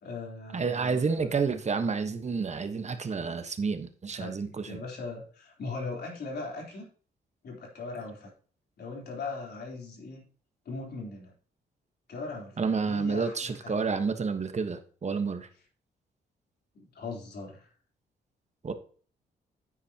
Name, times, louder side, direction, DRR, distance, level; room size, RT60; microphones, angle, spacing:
voice 1, 0.0-1.0 4.1-6.8 7.4-8.3 8.8-10.2 10.7-11.3 12.1-13.7 16.7-17.7, left 3 dB, 65° left, 3.6 m, -39 dB
voice 2, 0.5-4.8 12.6-15.5 18.6-18.7, right 5 dB, 40° right, 1.2 m, -30 dB
9.8 x 8.7 x 2.9 m
cardioid pair, 70°, 18 cm